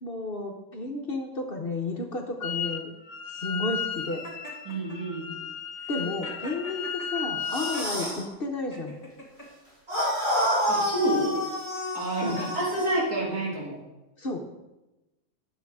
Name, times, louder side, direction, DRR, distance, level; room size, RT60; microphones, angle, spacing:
voice 1, 0.0-2.9 3.3-4.2 5.9-8.9 12.2-12.4 14.2-14.4, left 2 dB, 45° left, 2 dB, 1.0 m, -32 dB
Wind instrument woodwind instrument, 2.4-2.8 3.1-7.9, left 7 dB, 70° left, 1.1 m, -34 dB
Laughter, 4.2-5.0 5.8-8.2 8.7-9.5 10.2-10.5 11.2-13.5, left 1 dB, 25° left, 2.2 m, -44 dB
voice 2, 4.6-5.3 10.7-11.4 11.9-13.8, right 1 dB, 75° right, -3 dB, 2.9 m, -28 dB
sound 1, 7.4-8.2 9.9-13.0, equal, 45° right, 4.6 m, -28 dB
11.0 x 6.4 x 4.7 m, 1.0 s
omnidirectional pair, 1.6 m